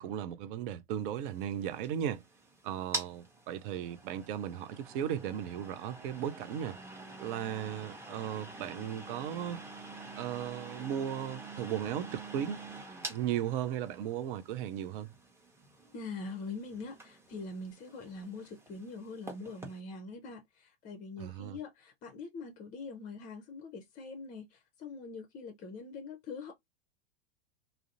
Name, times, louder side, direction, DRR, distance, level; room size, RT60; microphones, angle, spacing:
voice 1, 0.0-2.2 2.6-6.8 7.2-9.6 10.2-12.6 13.1-15.1 21.2-21.6, right 10 dB, 50° right, 0.5 m, -36 dB
sound 1, 1.1-19.8, right 2 dB, 10° right, 0.7 m, -47 dB
voice 2, 15.9-26.5, left 3 dB, 25° left, 0.6 m, -43 dB
2.4 x 2.0 x 2.6 m
hypercardioid pair, 105°, 34 cm